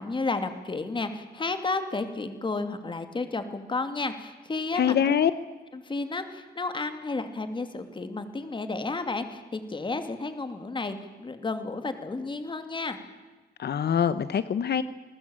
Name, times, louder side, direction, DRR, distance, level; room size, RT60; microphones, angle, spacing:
voice 1, 0.0-5.1 5.7-13.0, left 3 dB, 30° left, 8 dB, 2.5 m, -32 dB
voice 2, 4.7-5.3 13.6-14.8, left 8 dB, 80° left, 14 dB, 0.9 m, -24 dB
28.5 x 20.0 x 8.9 m, 1.3 s
wide cardioid pair, 165°, 17 cm